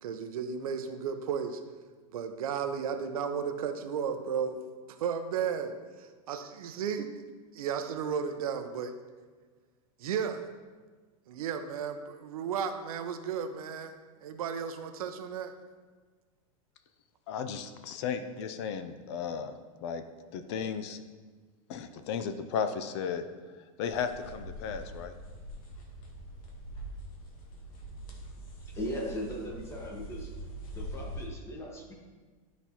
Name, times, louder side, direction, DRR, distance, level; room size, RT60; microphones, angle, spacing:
voice 1, 0.0-1.6 2.1-4.6 4.9-7.1 7.5-8.9 10.0-10.4 11.3-14.0 14.2-15.5, right 7 dB, 85° right, 7 dB, 0.7 m, -34 dB
voice 2, 17.3-20.0 20.3-21.0 21.7-23.2 23.8-25.1, left 7 dB, 50° left, 9 dB, 0.5 m, -35 dB
sound 1, 23.9-31.3, right 1 dB, 85° left, 1.4 m, -43 dB
voice 3, 28.6-30.3 30.7-31.9, equal, 15° left, -1 dB, 1.2 m, -38 dB
12.0 x 4.1 x 2.9 m, 1.4 s
supercardioid pair, 155°, 18 cm